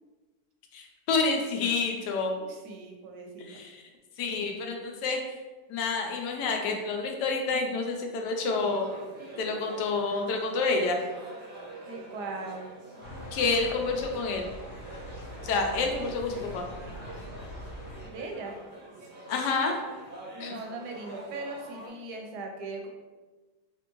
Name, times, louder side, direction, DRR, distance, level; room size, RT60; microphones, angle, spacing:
voice 1, 0.7-2.3 3.5-3.8 4.2-5.2 5.7-8.9 9.4-11.0 13.3-14.5 15.4-16.7 19.3-19.8 20.4-20.6, left 4 dB, 90° left, 3 dB, 1.2 m, -28 dB
voice 2, 2.4-3.6 11.9-12.7 18.1-18.6 20.3-22.9, right 3 dB, 85° right, 2 dB, 1.2 m, -39 dB
sound 1, 8.4-21.9, right 2 dB, 55° right, 0.6 m, -46 dB
sound 2, 13.0-18.1, left 1 dB, 65° left, 1.1 m, -43 dB
3.4 x 2.6 x 2.9 m, 1.3 s
omnidirectional pair, 1.8 m